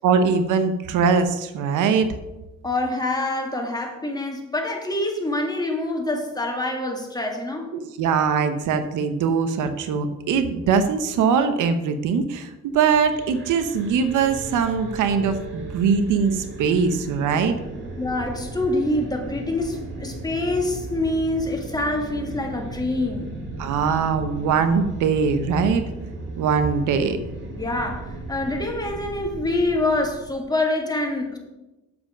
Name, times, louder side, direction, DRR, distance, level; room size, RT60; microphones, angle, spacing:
voice 1, 0.0-2.1 7.7-17.5 23.6-25.8 26.4-27.2, right 6 dB, 85° right, 9 dB, 0.9 m, -21 dB
voice 2, 2.6-7.7 18.0-23.3 27.6-31.4, left 2 dB, 15° left, 1 dB, 2.0 m, -26 dB
sound 1, 12.9-30.4, right 2 dB, 40° right, 2.1 m, -36 dB
8.1 x 7.3 x 5.1 m, 1.0 s
cardioid pair, 90°, 30 cm